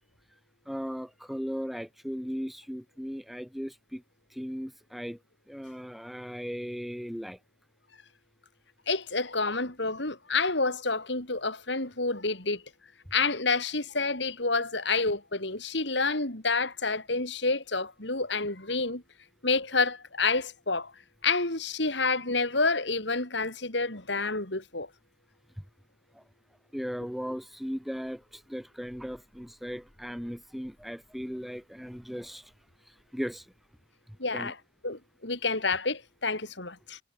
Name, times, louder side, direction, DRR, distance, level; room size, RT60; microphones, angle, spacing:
voice 1, 0.6-4.0 4.3-5.2 5.5-7.4 26.1-26.2 26.7-32.5 32.9-33.5 34.3-34.5, equal, ahead, 1.7 m, -37 dB
voice 2, 8.9-12.6 13.1-19.0 19.4-20.9 21.2-24.9 34.2-34.5 34.8-37.0, left 3 dB, 60° left, 4.2 m, -29 dB
head